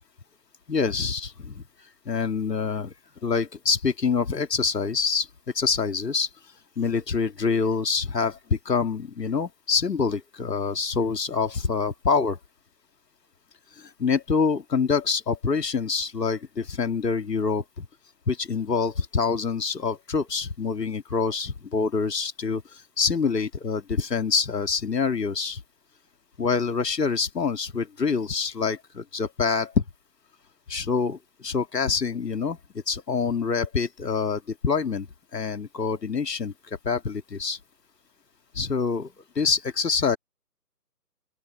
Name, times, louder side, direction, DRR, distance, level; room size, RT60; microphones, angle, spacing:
voice 1, 0.7-1.6 2.1-2.9 3.2-5.3 5.5-6.3 6.8-12.4 13.8-17.9 18.3-25.6 26.4-29.8 30.7-32.6 32.9-37.6 38.5-40.2, left 5 dB, 75° left, 2.4 m, -26 dB
open air
figure-of-eight pair, 160°, 49 cm